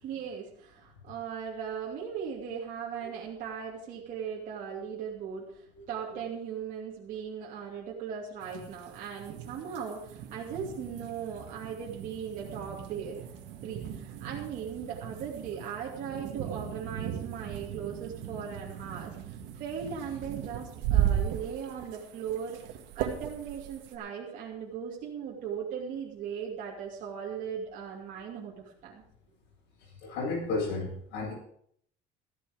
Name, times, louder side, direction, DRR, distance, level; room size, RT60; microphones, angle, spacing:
voice 1, 0.0-13.3 13.6-29.0, right 7 dB, 45° right, -4 dB, 2.7 m, -38 dB
sound 1, 8.4-24.0, right 10 dB, 75° right, 1.9 m, -37 dB
voice 2, 30.0-31.3, left 3 dB, 85° left, -4 dB, 7.6 m, -32 dB
14.5 x 11.0 x 5.0 m, 0.65 s
cardioid pair, 175°, 19 cm